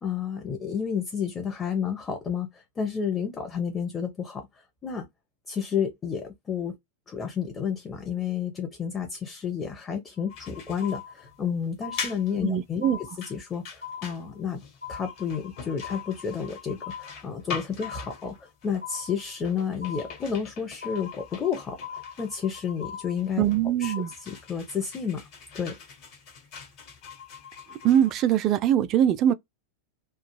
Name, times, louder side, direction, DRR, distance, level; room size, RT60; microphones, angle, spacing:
voice 1, 0.0-5.1 5.5-6.8 7.1-14.6 14.9-23.4 23.8-23.9 24.2-25.3 25.5-25.8, left 7 dB, 20° left, 0.7 m, -31 dB
sound 1, 10.2-10.5 10.8-11.5 11.8-12.5 12.8-13.5 13.8-14.5 14.8-15.5 15.8-16.5 16.8-17.5 17.8-18.5 18.8-19.5 19.8-20.5 20.8-21.5 21.8-22.5 22.8-23.5 23.8-24.5, left 8 dB, 75° left, 1.1 m, -41 dB
sound 2, 10.3-28.7, left 6 dB, 40° left, 1.2 m, -42 dB
voice 2, 12.4-13.0 23.4-24.1 27.8-29.3, right 10 dB, 35° right, 0.3 m, -22 dB
2.3 x 2.2 x 3.0 m
figure-of-eight pair, 90°, 0 cm